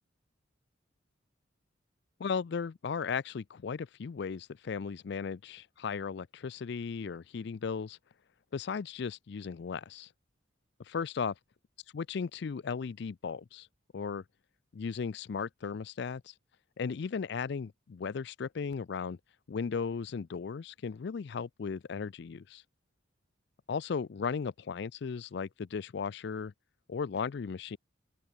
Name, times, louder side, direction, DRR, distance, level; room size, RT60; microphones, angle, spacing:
voice 1, 2.2-8.0 8.5-10.1 10.9-11.3 11.9-13.7 13.9-14.2 14.7-16.3 16.8-19.2 19.5-22.6 23.7-26.5 26.9-27.8, left 5 dB, 55° left, 0.4 m, -36 dB
open air
head